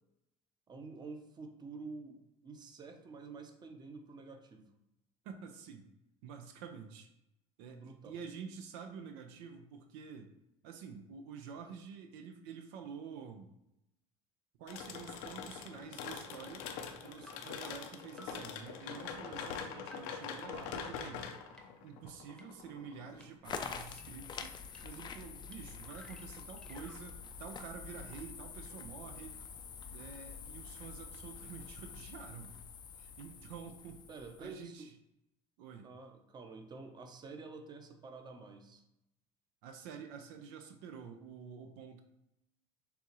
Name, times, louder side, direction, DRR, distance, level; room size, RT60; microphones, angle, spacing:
voice 1, 0.7-4.7 7.7-8.2 34.1-34.9 35.8-38.8, right 4 dB, 30° right, 5 dB, 0.8 m, -49 dB
voice 2, 5.2-5.9 6.2-7.1 7.6-10.3 10.6-13.5 14.6-16.7 17.0-21.2 21.8-29.3 29.9-32.6 32.9-34.0 34.4-34.9 35.6-35.9 39.6-42.0, right 6 dB, 80° right, 5 dB, 0.6 m, -49 dB
sound 1, 14.7-23.3, left 6 dB, 75° left, 0.6 m, -44 dB
sound 2, 15.3-15.4 16.3-16.4 17.3-17.4 18.2-18.3 19.1-19.2 19.9-20.0 20.7-20.8 21.6-21.7 22.4-22.5 23.2-23.3 24.0-24.1 24.7-24.8 25.5-25.6 25.8-27.0, left 1 dB, 5° left, 0.8 m, -55 dB
sound 3, 23.4-34.6, left 6 dB, 30° left, 0.4 m, -47 dB
6.8 x 2.4 x 3.0 m, 0.86 s
supercardioid pair, 100°, 14 cm